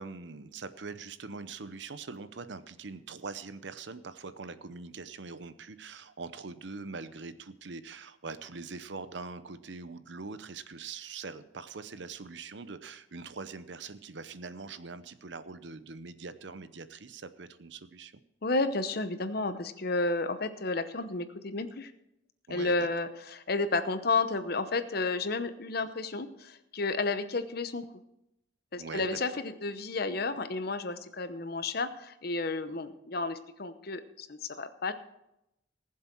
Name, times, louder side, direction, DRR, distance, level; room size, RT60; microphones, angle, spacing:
voice 1, 0.0-18.1 22.5-22.9 28.8-29.2 32.7-32.8, right 4 dB, 65° right, 12 dB, 0.8 m, -43 dB
voice 2, 18.4-21.9 22.5-27.9 28.7-34.9, left 3 dB, 55° left, 11 dB, 0.9 m, -32 dB
19.0 x 7.5 x 4.6 m, 0.85 s
head